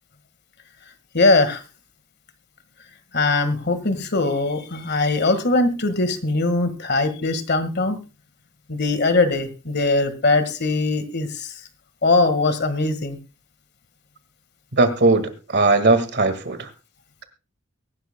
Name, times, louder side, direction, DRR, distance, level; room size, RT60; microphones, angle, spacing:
voice 1, 1.1-1.6 3.1-8.0 8.7-11.5 12.0-13.2, left 3 dB, 55° left, 11 dB, 1.7 m, -21 dB
voice 2, 14.7-16.7, right 3 dB, 55° right, 10 dB, 1.8 m, -19 dB
23.0 x 11.5 x 2.2 m, 0.30 s
head